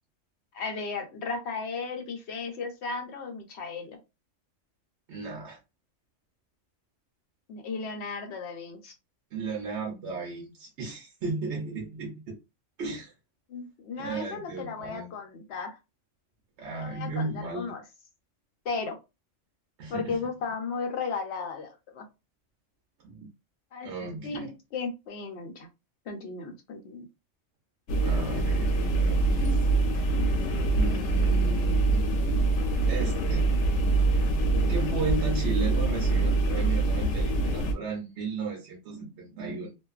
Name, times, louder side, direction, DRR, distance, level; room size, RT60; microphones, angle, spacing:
voice 1, 0.5-4.0 7.5-8.9 13.5-15.8 16.7-17.8 18.6-19.0 19.9-22.0 23.7-23.9 24.2-25.7 26.1-27.1, left 4 dB, 65° left, 0.9 m, -35 dB
voice 2, 5.1-5.6 9.3-12.4 12.8-13.1 14.0-15.1 16.6-17.7 19.8-20.2 23.0-23.3 23.8-24.5 28.0-29.6 30.7-32.0 32.9-33.5 34.0-34.3 34.7-39.8, right 4 dB, 65° right, 0.9 m, -35 dB
sound 1, 27.9-37.7, right 2 dB, 85° left, 1.0 m, -24 dB
2.5 x 2.2 x 2.3 m
omnidirectional pair, 1.3 m